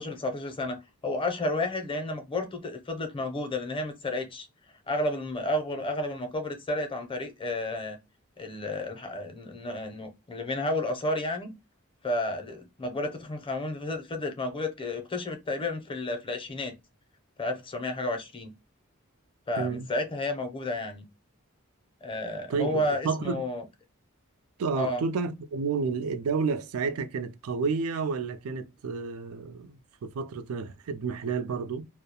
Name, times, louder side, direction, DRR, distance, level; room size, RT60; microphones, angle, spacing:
voice 1, 0.0-4.5 4.9-8.0 8.4-11.5 12.0-16.7 17.4-18.5 19.5-21.0 22.0-23.7 24.8-25.0, left 1 dB, 25° left, 0.5 m, -31 dB
voice 2, 19.6-19.9 22.5-23.4 24.6-31.9, right 5 dB, 85° right, 0.4 m, -30 dB
2.2 x 2.0 x 2.8 m
head